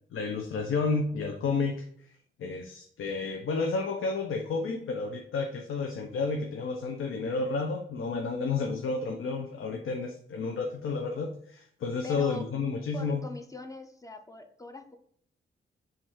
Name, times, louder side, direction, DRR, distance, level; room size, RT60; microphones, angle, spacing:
voice 1, 0.1-1.9 2.4-13.2, left 4 dB, 80° left, 3 dB, 0.5 m, -31 dB
voice 2, 12.0-12.4 12.9-15.0, left 3 dB, 15° left, 5 dB, 0.5 m, -42 dB
5.0 x 2.4 x 3.5 m, 0.63 s
cardioid pair, 75°, 20 cm